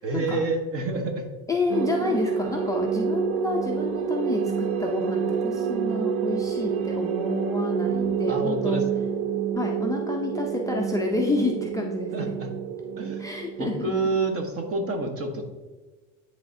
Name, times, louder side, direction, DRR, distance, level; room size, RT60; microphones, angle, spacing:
voice 1, 0.0-1.2 2.0-2.3 8.3-8.8 12.1-12.5 13.0-13.3 13.6-15.4, right 3 dB, 35° right, 4 dB, 1.2 m, -28 dB
voice 2, 1.5-8.8 9.5-12.3 13.2-13.9, left 3 dB, 10° left, -1 dB, 0.5 m, -29 dB
sound 1, 1.7-14.5, right 6 dB, 80° right, 0.6 m, -28 dB
10.0 x 3.5 x 2.7 m, 1.3 s
supercardioid pair, 100°, 40 cm